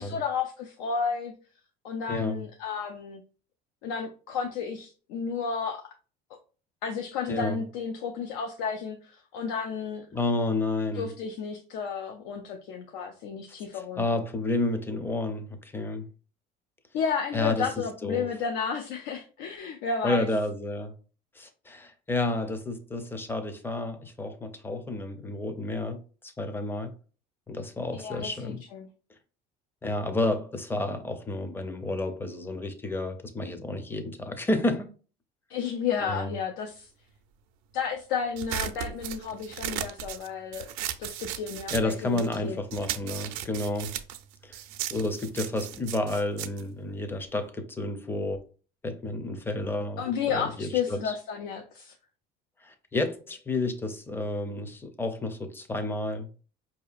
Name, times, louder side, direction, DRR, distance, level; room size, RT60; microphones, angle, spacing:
voice 1, 0.0-1.3 1.8-3.2 3.8-5.8 6.8-10.1 10.9-14.0 16.9-20.3 27.9-28.9 35.5-36.9 37.7-40.7 41.0-42.6 50.0-51.9, left 6 dB, 85° left, 0.6 m, -32 dB
voice 2, 2.1-2.4 7.3-7.6 10.1-11.1 13.7-16.1 17.3-17.7 18.0-18.3 20.0-20.9 21.4-26.9 27.5-28.6 29.8-34.9 36.0-36.3 41.7-44.0 44.4-44.6 44.9-48.4 48.8-51.2 52.6-56.3, left 2 dB, 10° left, 0.5 m, -30 dB
sound 1, 38.4-42.4 42.7-47.5, right 11 dB, 85° right, 0.5 m, -36 dB
4.9 x 2.7 x 2.4 m
cardioid pair, 125°, 19 cm